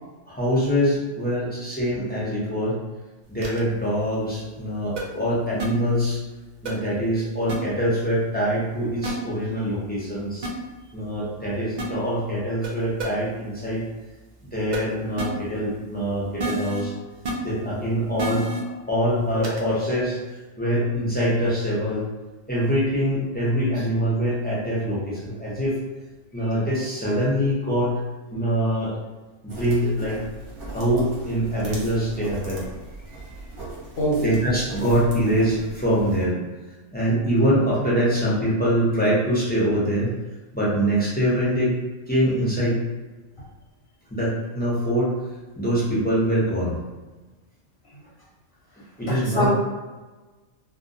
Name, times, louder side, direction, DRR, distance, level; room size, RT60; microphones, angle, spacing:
voice 1, 0.3-2.8 3.3-6.2 6.6-10.5 10.9-13.8 14.5-16.9 17.4-18.4 18.9-20.2 20.6-22.1 22.5-25.8 26.3-27.9 28.3-28.9 29.4-30.2 30.7-32.6 33.3-33.4 34.2-36.3 36.9-40.1 40.5-41.7 42.1-42.8 44.1-45.1 45.6-46.8 49.0-49.5, equal, 15° left, -8 dB, 0.4 m, -24 dB
sound 1, 3.4-3.6 5.0-5.1 5.6-5.7 6.7-6.8 7.5-7.6 9.0-9.1 10.4-10.5 11.8-11.9 12.6-12.7 13.0-13.1 14.7-14.8 15.2-15.3 16.4-16.8 17.3-17.4 18.2-18.6 19.4-19.6, right 2 dB, 75° right, 0.4 m, -28 dB
sound 2, 29.5-36.3, right 2 dB, 55° right, 0.7 m, -38 dB
voice 2, 49.0-49.5, equal, 60° left, -7 dB, 0.7 m, -24 dB
2.2 x 2.2 x 2.6 m, 1.2 s
omnidirectional pair, 1.3 m